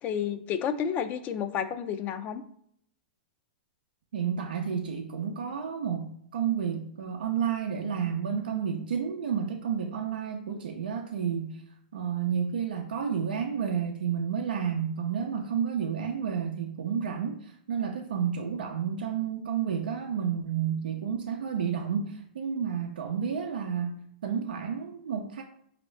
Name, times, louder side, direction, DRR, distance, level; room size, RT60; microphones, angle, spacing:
voice 1, 0.0-2.4, left 8 dB, 35° left, 9 dB, 0.4 m, -31 dB
voice 2, 4.1-11.6 11.9-25.4, right 7 dB, 85° right, 3 dB, 0.5 m, -31 dB
5.2 x 2.8 x 3.2 m, 0.68 s
hypercardioid pair, 125°, 5 cm